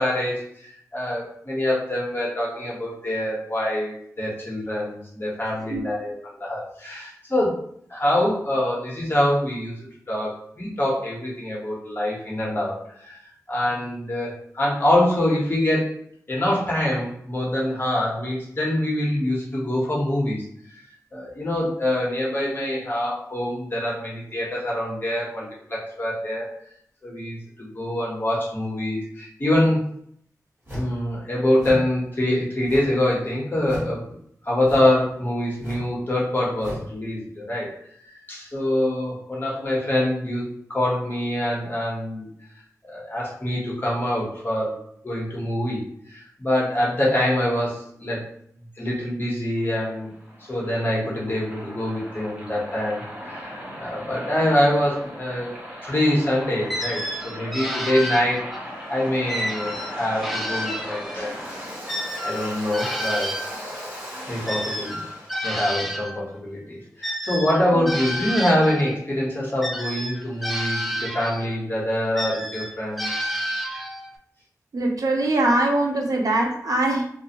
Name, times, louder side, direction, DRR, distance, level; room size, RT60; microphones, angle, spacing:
voice 1, 0.0-6.1 6.4-7.6 7.9-9.7 10.1-15.9 16.3-20.4 21.1-26.5 27.0-29.8 30.7-34.1 34.4-37.8 38.3-42.3 42.9-44.8 45.0-45.8 46.1-48.3 48.8-50.1 50.5-58.5 58.9-61.4 62.2-63.4 64.3-65.0 65.4-73.1, left 1 dB, 35° left, -4 dB, 0.9 m, -25 dB
sound 1, 30.6-31.0 31.6-31.9 32.6-33.1 33.6-34.0 34.6-35.0 35.6-35.9 36.6-36.9, equal, 40° right, 1.4 m, -35 dB
Waves surf, 49.6-65.4, equal, 20° right, 0.8 m, -38 dB
sound 2, 56.7-58.7 59.3-61.4 61.9-66.2 67.0-69.0 69.6-71.6 72.1-74.1, equal, ahead, 0.3 m, -30 dB
voice 2, 74.7-77.0, right 2 dB, 75° right, 1 dB, 0.5 m, -22 dB
2.4 x 2.1 x 2.8 m, 0.68 s
wide cardioid pair, 100°, 6 cm